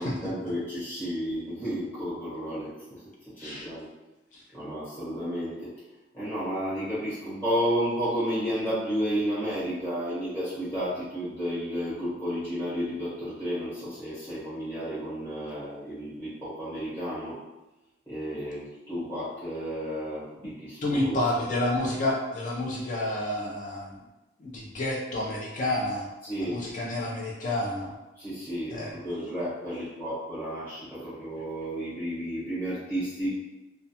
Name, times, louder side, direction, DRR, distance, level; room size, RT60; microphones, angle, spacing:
voice 1, 0.0-3.9 4.5-5.7 6.1-17.4 18.1-21.5 26.2-26.7 28.1-33.3, equal, 10° left, -14 dB, 1.0 m, -32 dB
voice 2, 20.8-24.0 24.4-26.1 26.5-27.9 28.7-28.9, left 1 dB, 40° left, -3 dB, 0.4 m, -29 dB
2.2 x 2.2 x 2.7 m, 1.0 s
head